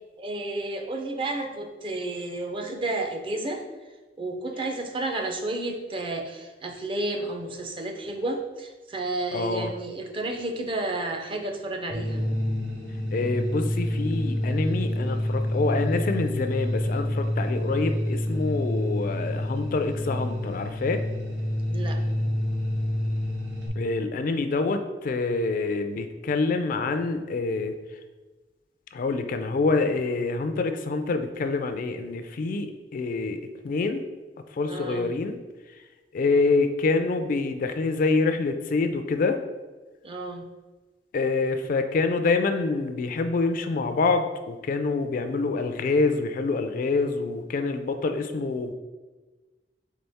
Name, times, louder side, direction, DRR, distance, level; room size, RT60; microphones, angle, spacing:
voice 1, 0.2-3.6 4.2-12.2 21.7-22.0 34.7-35.1 40.0-40.5, right 2 dB, 30° right, 4 dB, 0.5 m, -31 dB
voice 2, 9.3-9.7 13.1-21.0 23.8-27.7 28.9-33.4 33.6-34.0 34.6-35.4 36.1-39.4 41.1-48.7, left 3 dB, 50° left, 7 dB, 0.3 m, -26 dB
sound 1, 11.9-23.7, left 1 dB, 85° right, 1.0 m, -28 dB
4.1 x 3.6 x 3.4 m, 1.2 s
head